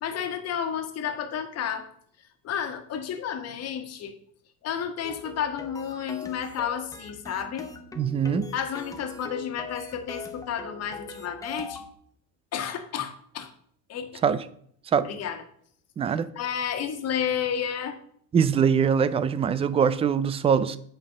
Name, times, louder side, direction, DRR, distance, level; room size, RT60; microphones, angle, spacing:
voice 1, 0.0-1.9 2.4-4.1 4.6-7.7 8.5-11.8 12.5-13.5 13.9-14.2 15.0-15.4 16.1-18.0, left 8 dB, 40° left, 6 dB, 1.6 m, -31 dB
sound 1, 5.0-11.9, left 4 dB, 10° left, 0.9 m, -41 dB
voice 2, 8.0-8.5 14.2-14.4 14.9-15.1 16.0-16.3 18.3-20.8, right 7 dB, 15° right, 15 dB, 0.4 m, -22 dB
8.8 x 5.5 x 7.4 m, 0.63 s
cardioid pair, 155°, 39 cm